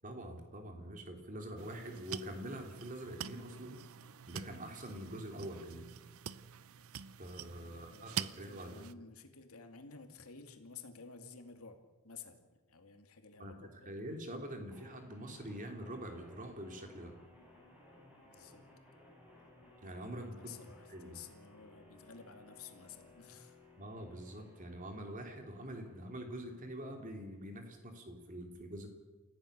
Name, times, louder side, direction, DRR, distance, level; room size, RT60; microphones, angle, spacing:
voice 1, 0.0-3.8 4.3-5.8 7.2-8.9 13.4-13.5 13.8-17.1 19.8-20.4 20.9-21.2 23.8-28.9, right 1 dB, 35° right, 4 dB, 3.2 m, -45 dB
sound 1, 1.6-8.9, right 8 dB, 75° right, 0.7 m, -46 dB
voice 2, 7.6-11.8 12.0-14.0 18.2-18.6 20.1-23.6, left 5 dB, 80° left, 6 dB, 2.5 m, -53 dB
sound 2, 14.7-27.7, left 2 dB, 5° right, 7.6 m, -61 dB
28.5 x 15.5 x 6.8 m, 1.2 s
head